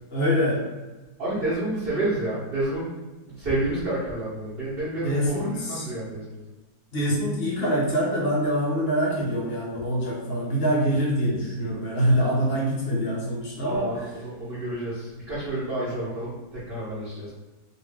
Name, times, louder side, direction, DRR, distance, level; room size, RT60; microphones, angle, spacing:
voice 1, 0.1-0.7 5.0-5.9 6.9-13.9, equal, 45° left, -4 dB, 0.9 m, -24 dB
voice 2, 1.2-2.9 3.3-6.4 13.6-17.3, right 1 dB, 35° right, -12 dB, 1.3 m, -29 dB
3.2 x 2.7 x 3.4 m, 1.2 s
omnidirectional pair, 1.8 m